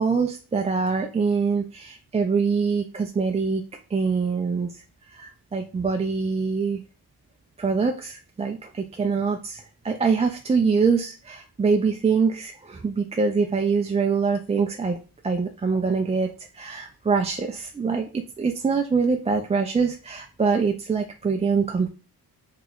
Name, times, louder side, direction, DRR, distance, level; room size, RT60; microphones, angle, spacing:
voice 1, 0.0-3.6 3.9-4.7 5.1-6.8 7.6-15.0 15.2-18.1 18.4-21.9, right 5 dB, 20° right, 3 dB, 0.3 m, -24 dB
3.2 x 2.9 x 3.8 m, 0.33 s
wide cardioid pair, 120°, 38 cm